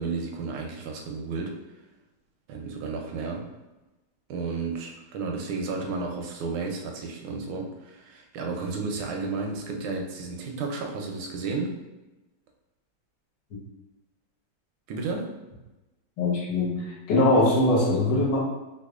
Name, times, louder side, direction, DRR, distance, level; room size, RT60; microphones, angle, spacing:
voice 1, 0.0-1.6 2.5-3.5 4.3-11.8 14.9-15.3, right 4 dB, 85° right, 2 dB, 1.4 m, -32 dB
voice 2, 16.2-18.4, left 2 dB, 60° left, -5 dB, 1.5 m, -22 dB
4.7 x 2.4 x 2.4 m, 1.1 s
omnidirectional pair, 2.2 m